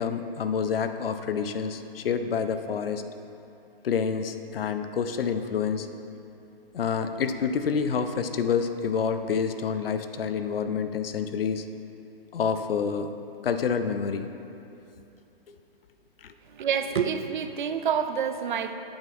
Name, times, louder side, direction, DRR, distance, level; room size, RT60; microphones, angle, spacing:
voice 1, 0.0-3.0 3.8-5.9 6.7-11.6 12.3-13.1 13.4-14.3 15.5-15.6 16.2-16.3, left 6 dB, 70° left, 9 dB, 0.6 m, -28 dB
voice 2, 16.5-18.8, right 7 dB, 55° right, 8 dB, 0.5 m, -28 dB
8.7 x 3.7 x 6.0 m, 2.7 s
hypercardioid pair, 145°, 30 cm